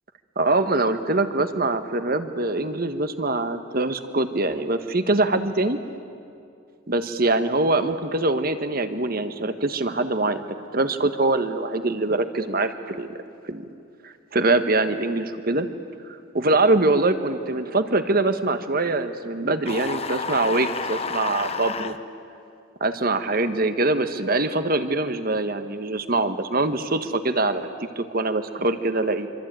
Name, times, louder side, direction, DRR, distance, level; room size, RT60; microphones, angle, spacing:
voice 1, 0.4-5.8 6.9-13.2 13.5-13.6 14.0-15.7 16.3-21.9 22.8-27.7 28.0-29.3, right 2 dB, 45° right, 9 dB, 1.4 m, -23 dB
sound 1, 19.6-22.0, left 4 dB, 30° left, 0.9 m, -30 dB
25.5 x 25.5 x 9.1 m, 2.5 s
head